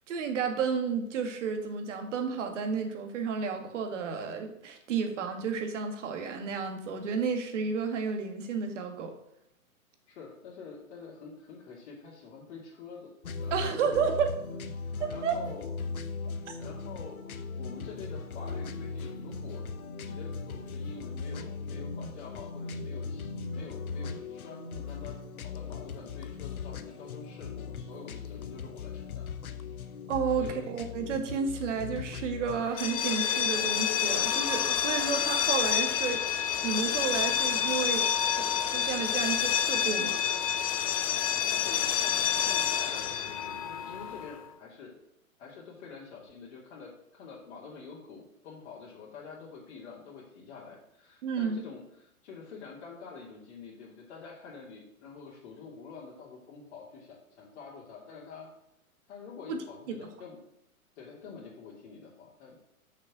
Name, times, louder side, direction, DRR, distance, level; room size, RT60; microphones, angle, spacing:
voice 1, 0.1-9.1 13.5-14.3 15.0-15.4 16.5-16.6 30.1-36.2 36.6-38.5 38.7-40.2 51.2-51.6 59.5-59.6, right 6 dB, 55° right, 5 dB, 1.8 m, -31 dB
voice 2, 10.1-13.1 13.4-14.0 14.8-15.7 16.6-17.2 17.5-19.6 20.0-29.3 30.4-30.7 41.4-44.9 45.4-58.5 59.1-60.4 60.9-62.6, left 5 dB, 50° left, -6 dB, 2.4 m, -47 dB
sound 1, 13.2-32.7, left 4 dB, 75° left, 0.9 m, -38 dB
sound 2, 32.7-44.4, left 9 dB, 25° left, 0.4 m, -28 dB
sound 3, 34.0-39.7, equal, ahead, 1.1 m, -50 dB
6.4 x 6.1 x 6.0 m, 0.79 s
hypercardioid pair, 120°, 43 cm